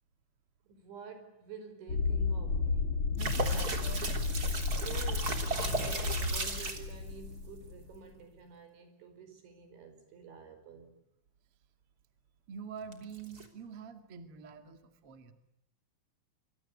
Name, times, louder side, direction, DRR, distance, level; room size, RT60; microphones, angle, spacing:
voice 1, 0.7-3.0 4.8-11.0, right 5 dB, 65° right, 7.1 m, -49 dB
sound 1, 1.9-8.0, left 4 dB, 35° left, 2.5 m, -33 dB
voice 2, 3.1-4.1 12.5-15.3, right 6 dB, 40° right, 2.2 m, -46 dB
sound 2, 3.2-6.9 12.9-13.5, right 3 dB, 25° right, 2.9 m, -35 dB
26.5 x 24.5 x 8.4 m
omnidirectional pair, 5.7 m